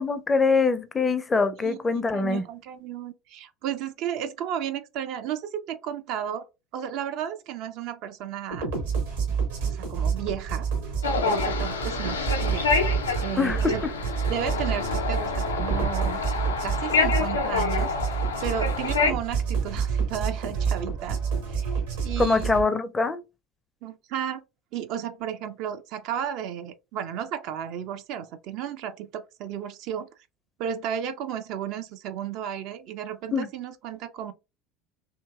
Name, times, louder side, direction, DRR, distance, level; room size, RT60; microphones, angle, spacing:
voice 1, 0.0-2.4 13.4-13.9 22.2-23.2 33.3-33.5, left 4 dB, 20° left, 0.4 m, -24 dB
voice 2, 1.6-6.5 6.7-8.7 9.7-10.7 11.2-12.7 13.2-13.8 14.3-16.2 16.6-17.9 18.4-21.2 21.5-21.6 22.0-22.6 23.8-24.4 24.7-30.1 30.6-34.3, right 9 dB, 55° right, 0.4 m, -33 dB
sound 1, 8.5-22.6, right 6 dB, 70° right, 1.0 m, -28 dB
sound 2, 11.0-19.1, left 5 dB, 80° left, 0.4 m, -27 dB
2.8 x 2.7 x 2.3 m
figure-of-eight pair, 65°, 0 cm